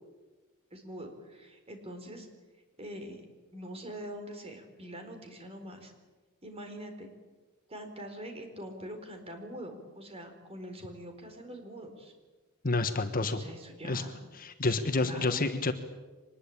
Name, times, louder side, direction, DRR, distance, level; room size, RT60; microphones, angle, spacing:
voice 1, 0.7-2.3 2.8-3.2 3.5-5.9 6.4-7.1 7.7-12.1 13.3-14.2 14.6-15.4, right 1 dB, 25° right, 5 dB, 4.4 m, -44 dB
voice 2, 12.6-13.4 13.8-14.0 14.4-15.7, left 3 dB, 40° left, 8 dB, 1.4 m, -29 dB
24.5 x 20.5 x 8.9 m, 1.3 s
head